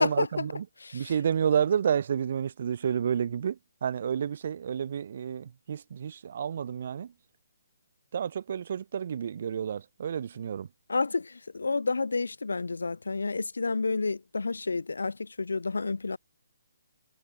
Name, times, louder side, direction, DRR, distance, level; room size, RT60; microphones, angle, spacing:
voice 1, 0.0-0.7 0.9-7.1 8.1-10.7, right 8 dB, 50° right, 2.0 m, -30 dB
voice 2, 0.8-1.1 10.9-16.2, left 3 dB, 90° left, 1.9 m, -30 dB
hypercardioid pair, 155°, 0 cm